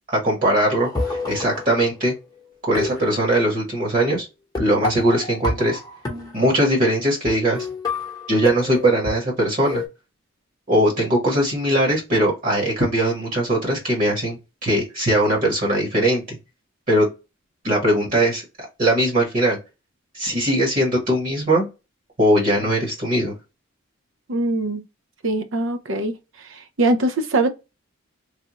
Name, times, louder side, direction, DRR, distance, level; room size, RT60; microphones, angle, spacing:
voice 1, 0.1-2.1 2.6-4.3 4.6-5.8 6.3-7.7 8.3-9.8 10.7-16.4 16.9-17.0 17.6-18.4 18.8-19.6 20.1-21.7 22.2-23.3, right 1 dB, 40° right, 1.3 m, -20 dB
sound 1, 0.8-2.2 2.7-3.7 4.5-6.7 7.2-7.3 7.5-9.9, left 3 dB, 20° left, 0.9 m, -29 dB
voice 2, 24.3-24.8 25.2-26.2 26.8-27.5, right 2 dB, 65° right, 0.6 m, -21 dB
3.4 x 2.3 x 2.9 m
head